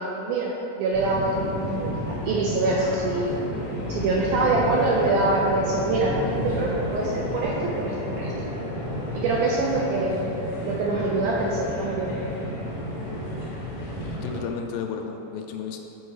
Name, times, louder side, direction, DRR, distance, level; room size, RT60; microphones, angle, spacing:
voice 1, 0.0-3.3 3.9-6.2 6.4-8.3 9.1-10.3 10.6-12.2, right 2 dB, 80° right, -3 dB, 1.8 m, -25 dB
sound 1, 0.9-14.4, left 1 dB, 60° left, 0.9 m, -31 dB
voice 2, 14.1-15.8, left 6 dB, 80° left, 3 dB, 2.1 m, -33 dB
7.9 x 4.4 x 4.8 m, 2.9 s
omnidirectional pair, 4.3 m